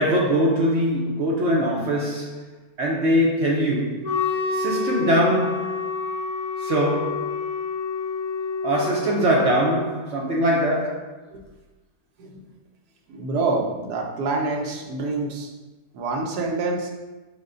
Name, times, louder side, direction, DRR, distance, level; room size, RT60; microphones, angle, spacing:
voice 1, 0.0-2.4 2.8-4.1 4.5-5.8 6.6-7.3 8.6-11.1, equal, 60° right, -3 dB, 0.8 m, -22 dB
Wind instrument woodwind instrument, 4.0-9.9, left 4 dB, 70° left, 1.3 m, -28 dB
voice 2, 13.1-15.5 15.9-16.9, right 3 dB, 80° right, 0 dB, 1.2 m, -26 dB
6.5 x 2.2 x 3.7 m, 1.2 s
omnidirectional pair, 1.7 m